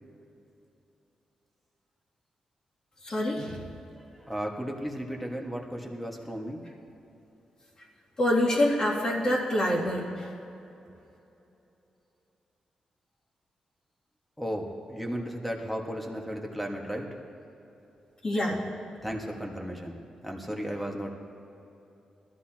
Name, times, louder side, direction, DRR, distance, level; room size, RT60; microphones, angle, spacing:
voice 1, 3.0-3.7 8.2-10.3 18.2-18.6, left 1 dB, 35° left, -4 dB, 2.7 m, -26 dB
voice 2, 4.2-6.6 14.4-17.1 19.0-21.1, equal, 5° left, 0 dB, 1.7 m, -35 dB
20.5 x 13.5 x 3.0 m, 2.9 s
wide cardioid pair, 115°, 2 cm